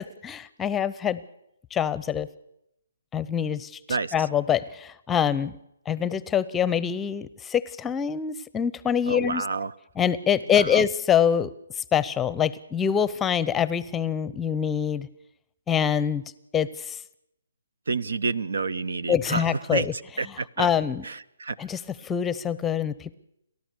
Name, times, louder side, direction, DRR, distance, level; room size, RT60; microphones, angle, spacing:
voice 1, 0.2-1.2 1.7-2.3 3.1-5.5 5.9-9.4 10.0-11.5 11.8-15.1 15.7-16.2 16.5-17.0 19.1-19.9 20.3-21.0 21.6-23.1, left 8 dB, 10° left, 18 dB, 0.7 m, -25 dB
voice 2, 9.1-9.7 10.6-10.8 17.9-19.4 19.7-19.9 20.2-20.7 21.0-21.6, right 4 dB, 75° right, 21 dB, 0.7 m, -29 dB
29.5 x 13.0 x 6.9 m, 0.81 s
hypercardioid pair, 145°, 0 cm